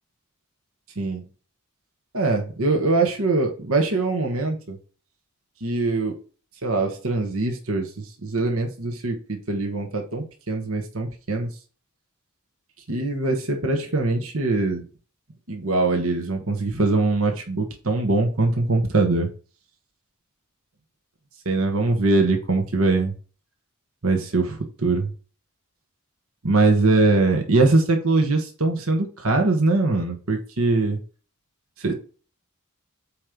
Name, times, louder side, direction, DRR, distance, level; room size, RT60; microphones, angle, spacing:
voice 1, 2.1-4.8 5.6-6.1 6.6-11.5 12.9-14.8 15.5-19.3 21.4-23.1 24.0-25.1 26.4-31.0 31.8-31.9, right 3 dB, 70° right, 3 dB, 1.3 m, -22 dB
8.5 x 3.1 x 5.2 m, 0.38 s
head